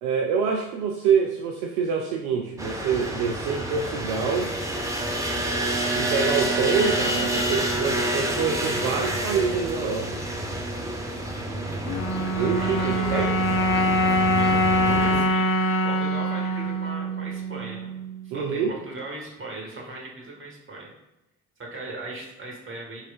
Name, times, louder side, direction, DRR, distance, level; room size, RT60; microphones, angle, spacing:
voice 1, 0.0-4.5 5.9-10.2 12.4-13.3 18.3-18.7, right 6 dB, 65° right, 1 dB, 0.5 m, -26 dB
sound 1, 2.6-15.2, right 1 dB, 5° right, 0.6 m, -28 dB
sound 2, 11.9-18.3, equal, 70° left, 0.6 m, -24 dB
voice 2, 12.4-13.3 14.3-15.5 15.8-17.9 18.2-20.9 21.6-23.1, right 2 dB, 30° right, -2 dB, 1.4 m, -38 dB
4.9 x 3.1 x 2.3 m, 0.95 s
figure-of-eight pair, 45°, 44 cm